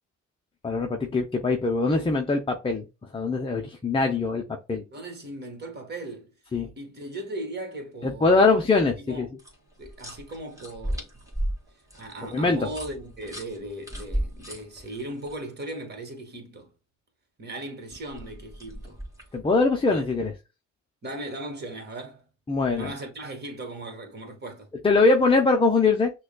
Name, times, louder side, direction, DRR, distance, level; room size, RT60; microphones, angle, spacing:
voice 1, 0.6-2.9 3.1-4.4 4.7-4.8 6.5-6.7 8.0-9.3 12.3-12.6 19.3-20.3 22.5-22.9 24.8-26.1, left 3 dB, 15° left, 0.6 m, -22 dB
voice 2, 4.9-6.3 6.8-8.6 9.0-9.2 9.8-11.1 11.9-16.7 17.4-19.0 19.9-20.0 21.0-22.3 22.7-24.7, right 1 dB, 35° right, 1.6 m, -37 dB
sound 1, 9.4-15.3 17.9-19.4, right 1 dB, 10° right, 2.0 m, -35 dB
6.1 x 2.3 x 2.2 m
cardioid pair, 90°, 30 cm